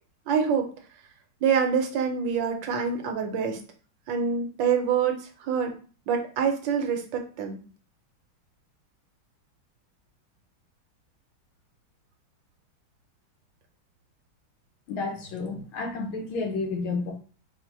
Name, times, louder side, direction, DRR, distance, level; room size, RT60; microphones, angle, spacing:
voice 1, 0.3-0.7 1.4-3.6 4.1-5.7 6.1-7.6, right 6 dB, 70° right, 4 dB, 1.3 m, -26 dB
voice 2, 14.9-17.1, left 3 dB, 90° left, 3 dB, 1.7 m, -31 dB
4.2 x 2.1 x 4.5 m, 0.39 s
omnidirectional pair, 2.2 m